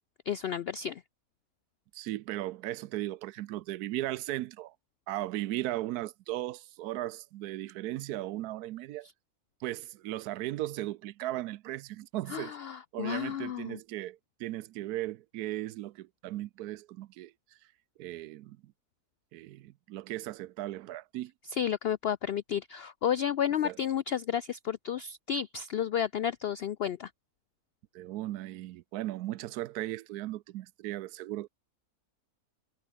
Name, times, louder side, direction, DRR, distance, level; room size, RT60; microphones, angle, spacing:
voice 1, 0.3-1.0 12.3-13.8 21.5-27.1, left 9 dB, 75° left, 0.5 m, -32 dB
voice 2, 1.9-4.7 5.1-9.1 9.6-17.3 18.0-18.7 19.3-21.3 23.6-23.8 27.9-31.5, right 15 dB, 85° right, 1.1 m, -37 dB
omnidirectional pair, 1.6 m